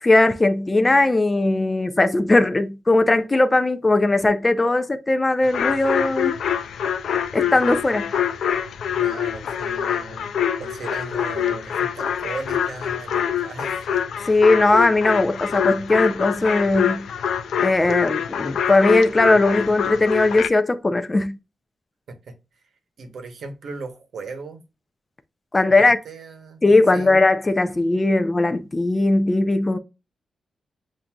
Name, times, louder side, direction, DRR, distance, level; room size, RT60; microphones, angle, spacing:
voice 1, 0.0-6.3 7.3-8.1 14.3-17.1 17.6-21.4 25.5-26.0 26.6-29.8, left 2 dB, 20° left, 0.4 m, -18 dB
sound 1, 5.4-20.5, left 9 dB, 85° left, 0.4 m, -25 dB
voice 2, 9.0-14.0 22.1-22.4 23.0-24.6 25.7-26.6 26.9-27.2, right 4 dB, 70° right, 0.9 m, -37 dB
7.2 x 2.6 x 2.2 m
wide cardioid pair, 115°, 0 cm